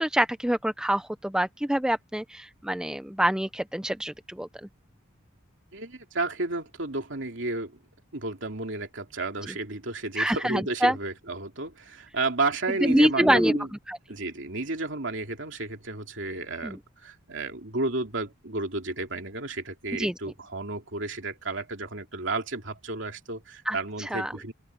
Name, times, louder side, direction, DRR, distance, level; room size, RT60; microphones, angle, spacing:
voice 1, 0.0-4.5 10.2-11.0 12.8-13.6 13.9-14.0 16.6-16.8 19.9-20.1 23.7-24.3, right 1 dB, 5° right, 0.5 m, -25 dB
voice 2, 5.7-7.8 8.1-13.7 14.1-24.5, right 2 dB, 60° right, 3.0 m, -32 dB
open air
head